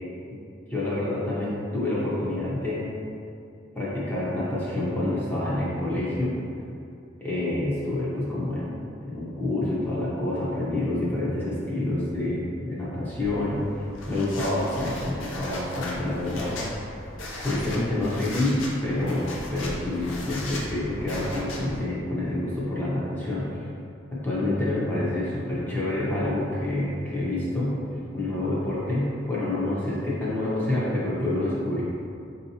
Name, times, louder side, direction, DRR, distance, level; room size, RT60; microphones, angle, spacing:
voice 1, 0.7-2.9 3.7-6.3 7.2-8.7 9.0-13.6 14.1-16.5 17.4-23.7 24.1-27.8 28.1-31.8, left 1 dB, 10° left, -9 dB, 0.6 m, -27 dB
sound 1, 13.2-21.8, left 1 dB, 85° left, 0.6 m, -37 dB
4.4 x 2.7 x 2.7 m, 2.5 s
head